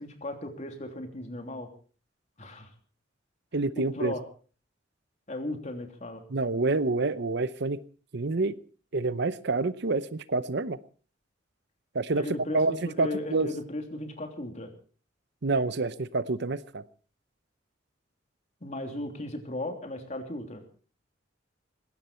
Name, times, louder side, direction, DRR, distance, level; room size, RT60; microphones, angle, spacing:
voice 1, 0.0-1.7 2.4-2.7 3.8-4.2 5.3-6.2 12.1-14.7 18.6-20.6, left 1 dB, 35° left, 5 dB, 3.2 m, -36 dB
voice 2, 3.5-4.1 6.3-7.8 8.1-8.5 8.9-10.8 11.9-13.5 15.4-16.8, right 3 dB, 60° right, 15 dB, 0.8 m, -28 dB
19.5 x 17.0 x 4.4 m, 0.40 s
head